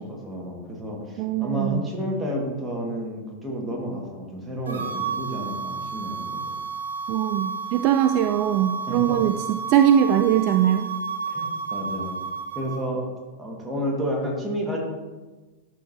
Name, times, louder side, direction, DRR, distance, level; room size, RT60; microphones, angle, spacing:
voice 1, 0.0-6.5 8.9-9.2 11.3-12.1 12.5-13.0 13.4-14.8, equal, 10° right, -2 dB, 1.8 m, -31 dB
voice 2, 1.2-1.8 7.1-10.9, right 10 dB, 45° right, 9 dB, 0.3 m, -21 dB
sound 1, 4.7-12.8, right 5 dB, 70° right, 1.3 m, -32 dB
11.5 x 4.6 x 2.8 m, 1.3 s
figure-of-eight pair, 90°, 0 cm